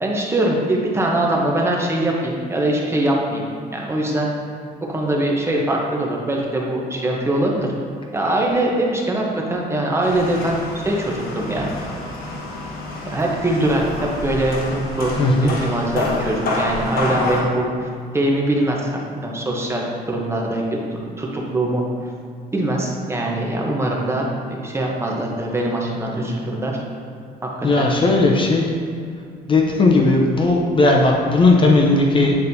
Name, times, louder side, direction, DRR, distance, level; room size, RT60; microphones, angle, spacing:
voice 1, 0.0-3.4 3.7-4.3 4.9-7.7 8.1-11.7 13.0-15.1 15.4-17.9 18.1-18.8 19.2-21.8 22.5-26.8 27.4-27.9, right 1 dB, 15° right, -2 dB, 0.9 m, -22 dB
sound 1, 10.0-17.4, left 2 dB, 60° left, 1.3 m, -28 dB
voice 2, 15.2-15.5 27.6-28.7 29.5-32.4, left 2 dB, 30° left, 0 dB, 0.6 m, -16 dB
8.7 x 4.1 x 2.7 m, 2.3 s
cardioid pair, 110°, 17 cm